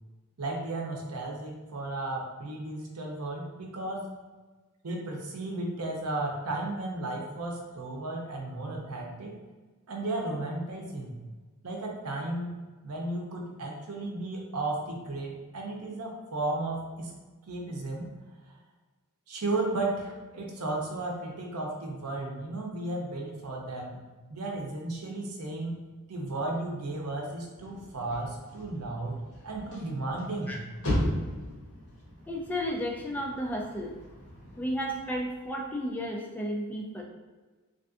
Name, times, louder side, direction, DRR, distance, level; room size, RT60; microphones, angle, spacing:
voice 1, 0.4-4.1 4.8-9.3 9.9-11.1 11.6-12.6 12.8-17.1 17.5-18.1 19.3-24.0 24.3-25.8 26.1-30.6, right 2 dB, 80° right, 0 dB, 0.7 m, -34 dB
sound 1, 27.5-35.8, equal, 65° left, 1.2 m, -37 dB
voice 2, 32.3-33.9 34.6-37.0, equal, 5° left, -1 dB, 0.4 m, -33 dB
3.4 x 2.5 x 2.4 m, 1.3 s
head